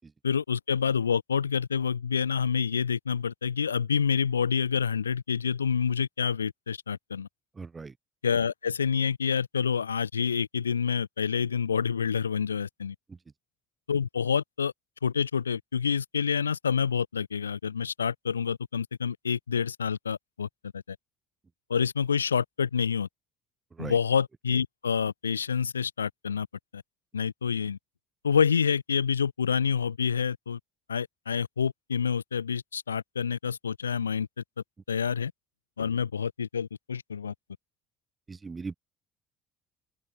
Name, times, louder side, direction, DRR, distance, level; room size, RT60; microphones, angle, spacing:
voice 1, 0.2-7.3 8.2-12.9 13.9-14.7 15.0-20.5 20.7-21.0 21.7-23.1 23.8-26.5 26.7-26.8 27.1-27.8 28.2-30.6 30.9-34.4 34.9-35.3 35.8-37.3, left 6 dB, 80° left, 1.3 m, -28 dB
voice 2, 7.6-7.9 13.1-13.2 23.7-23.9 38.3-38.8, right 4 dB, 25° right, 6.4 m, -39 dB
open air
figure-of-eight pair, 50°, 0 cm